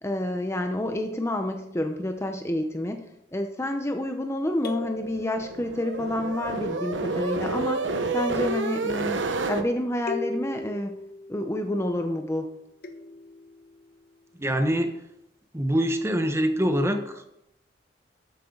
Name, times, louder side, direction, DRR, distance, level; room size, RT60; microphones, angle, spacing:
voice 1, 0.0-3.0 3.3-7.9 8.1-11.0 11.3-12.5, left 1 dB, 15° left, 5 dB, 0.7 m, -29 dB
sound 1, 4.6-6.1 7.4-9.5 10.1-12.2 12.8-14.2, left 3 dB, 55° left, 1.0 m, -40 dB
sound 2, 4.9-9.6, right 3 dB, 90° right, 1.1 m, -29 dB
voice 2, 14.4-14.9 15.5-17.4, equal, 15° right, 6 dB, 1.0 m, -25 dB
13.0 x 9.1 x 3.9 m, 0.81 s
head